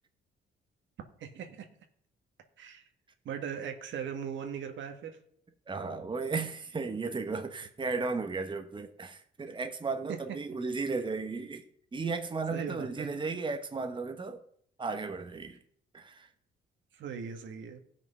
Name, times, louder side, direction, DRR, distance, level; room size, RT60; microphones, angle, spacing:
voice 1, 1.2-1.7 2.6-2.8 3.3-5.2 10.1-10.2 12.5-13.1 16.9-17.8, right 7 dB, 70° right, 1.8 m, -39 dB
voice 2, 5.7-11.7 11.9-14.4 14.8-15.6 15.9-16.3, right 4 dB, 25° right, 1.2 m, -35 dB
16.0 x 6.1 x 5.6 m
cardioid pair, 90°, 20 cm